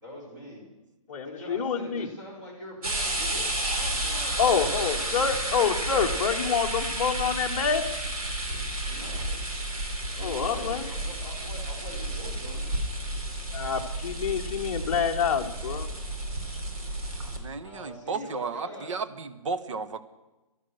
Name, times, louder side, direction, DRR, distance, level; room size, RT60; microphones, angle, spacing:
voice 1, 0.0-0.6 1.2-5.3 8.9-9.4 10.2-12.7 17.6-18.9, left 1 dB, 35° right, -4 dB, 5.6 m, -43 dB
voice 2, 1.1-2.1 4.4-7.9 10.2-10.8 13.5-15.9, left 6 dB, 25° left, -2 dB, 0.8 m, -27 dB
sound 1, 2.8-17.4, right 1 dB, 80° right, 3.8 m, -31 dB
voice 3, 17.4-20.0, right 4 dB, 55° right, 12 dB, 1.0 m, -33 dB
13.0 x 12.5 x 6.3 m, 1.1 s
hypercardioid pair, 175°, 19 cm